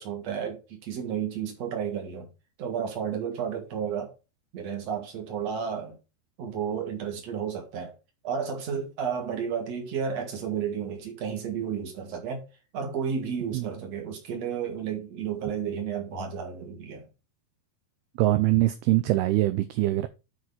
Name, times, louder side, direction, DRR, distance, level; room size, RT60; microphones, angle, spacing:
voice 1, 0.0-2.3 2.6-4.1 4.5-6.0 6.4-7.9 8.2-12.5 12.7-17.0, right 7 dB, 45° right, 3.0 m, -32 dB
voice 2, 18.2-20.1, right 16 dB, 80° right, 2.4 m, -23 dB
10.0 x 4.7 x 4.3 m
omnidirectional pair, 4.9 m